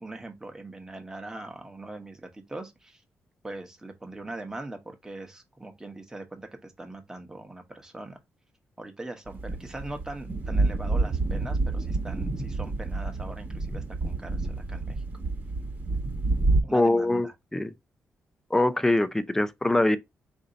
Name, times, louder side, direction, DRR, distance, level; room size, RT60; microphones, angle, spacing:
voice 1, 0.0-3.0 3.4-8.2 8.8-15.1 16.6-17.3, right 2 dB, 10° right, 0.9 m, -41 dB
sound 1, 9.3-16.6, right 3 dB, 35° right, 1.1 m, -28 dB
voice 2, 16.7-17.7 18.5-20.0, left 2 dB, 10° left, 0.4 m, -23 dB
4.3 x 2.7 x 3.8 m
cardioid pair, 125°, 5 cm